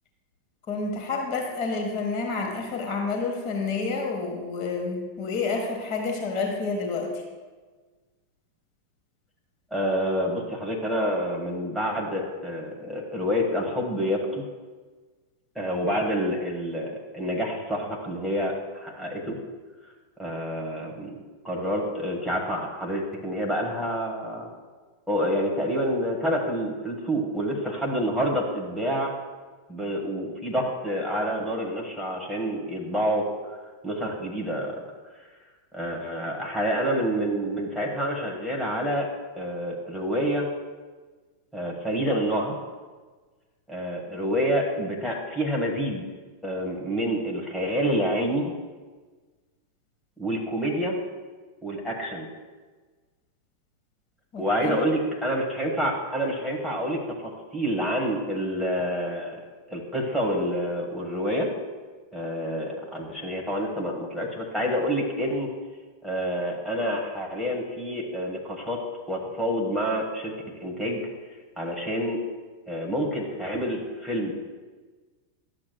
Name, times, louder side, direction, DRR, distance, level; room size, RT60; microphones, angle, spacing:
voice 1, 0.7-7.2 54.3-54.8, left 4 dB, 40° left, 1 dB, 1.4 m, -29 dB
voice 2, 9.7-14.4 15.5-19.4 20.2-21.2 21.4-24.5 25.1-29.1 29.7-33.6 33.8-34.9 35.7-39.1 39.3-40.5 41.5-42.5 43.7-46.0 46.4-48.6 50.2-51.0 51.6-52.3 54.4-59.4 59.7-61.5 62.1-65.5 66.0-68.8 69.1-70.3 70.6-71.1 71.6-72.2 72.7-74.3, equal, ahead, -3 dB, 1.5 m, -28 dB
11.5 x 7.5 x 2.3 m, 1.4 s
figure-of-eight pair, 90°, 0 cm